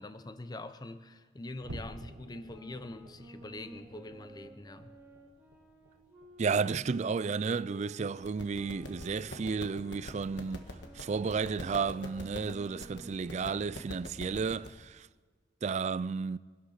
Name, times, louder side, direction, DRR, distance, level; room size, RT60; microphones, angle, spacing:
voice 1, 0.0-4.9, left 2 dB, 20° left, 0.7 m, -44 dB
sound 1, 1.6-8.3 8.6-8.9 9.3-9.5 10.0-10.2, right 1 dB, 90° right, 1.4 m, -52 dB
sound 2, 2.3-8.0 8.5-14.1, equal, 10° right, 2.6 m, -54 dB
voice 2, 6.4-10.7 10.9-15.1 15.6-16.4, right 5 dB, 40° right, 0.3 m, -32 dB
sound 3, 8.2-14.7, left 1 dB, 65° left, 1.5 m, -46 dB
24.0 x 8.7 x 5.8 m
head